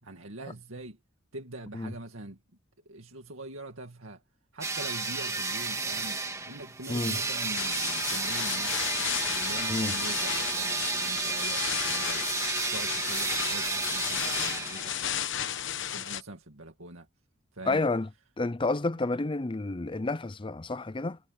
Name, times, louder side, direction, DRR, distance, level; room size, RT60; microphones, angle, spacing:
voice 1, 0.0-1.0 1.3-2.4 2.9-4.2 4.5-6.2 6.5-9.0 9.4-12.3 12.7-15.4 15.7-17.1 17.5-17.8, right 2 dB, 85° right, 2.2 m, -43 dB
sound 1, 4.6-15.2, right 4 dB, 15° right, 1.8 m, -32 dB
sound 2, 7.5-16.2, left 10 dB, 65° left, 1.1 m, -34 dB
voice 2, 17.7-18.1 18.4-21.2, left 2 dB, 25° left, 0.6 m, -30 dB
head